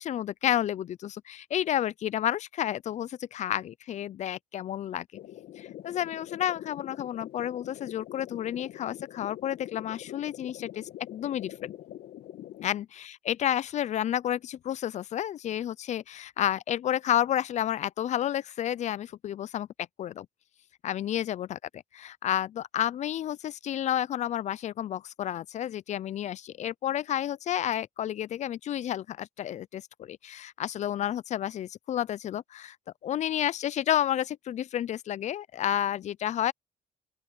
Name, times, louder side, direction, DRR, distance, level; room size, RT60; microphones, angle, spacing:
voice 1, 0.0-5.1 5.6-10.8 11.1-11.7 12.6-19.7 20.0-20.3 20.8-21.6 22.0-32.8 33.0-36.5, left 11 dB, 45° left, 0.4 m, -31 dB
sound 1, 5.2-12.7, left 12 dB, 70° left, 2.3 m, -44 dB
open air
cardioid pair, 110°, 17 cm